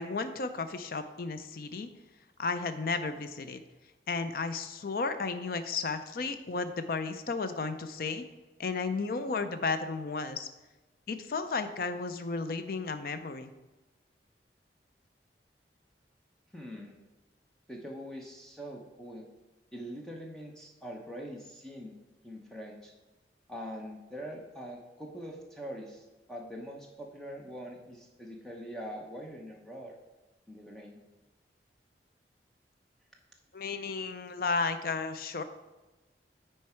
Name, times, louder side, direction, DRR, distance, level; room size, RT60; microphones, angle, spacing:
voice 1, 0.0-1.9 2.4-3.6 4.1-8.2 8.6-10.5 11.1-13.5 33.5-35.4, left 4 dB, 55° left, 10 dB, 0.5 m, -33 dB
voice 2, 16.5-16.9 17.7-19.3 19.7-21.9 22.2-22.9 23.5-29.9 30.5-31.0, equal, 5° left, 0 dB, 0.8 m, -43 dB
9.4 x 4.6 x 4.4 m, 1.1 s
head